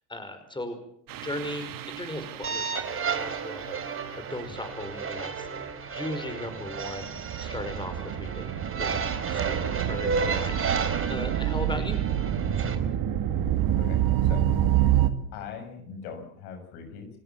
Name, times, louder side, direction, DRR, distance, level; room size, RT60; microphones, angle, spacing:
voice 1, 0.1-0.8 1.1-5.5 5.9-7.1 7.4-8.5 8.8-12.0, left 1 dB, 10° left, 8 dB, 5.4 m, -38 dB
sound 1, 1.1-15.1, right 11 dB, 50° right, 2.3 m, -29 dB
sound 2, 2.4-12.7, right 5 dB, 30° right, 4.3 m, -33 dB
voice 2, 15.3-17.1, left 6 dB, 70° left, 6 dB, 7.2 m, -40 dB
29.5 x 16.5 x 7.5 m, 0.67 s
hypercardioid pair, 80°, 43 cm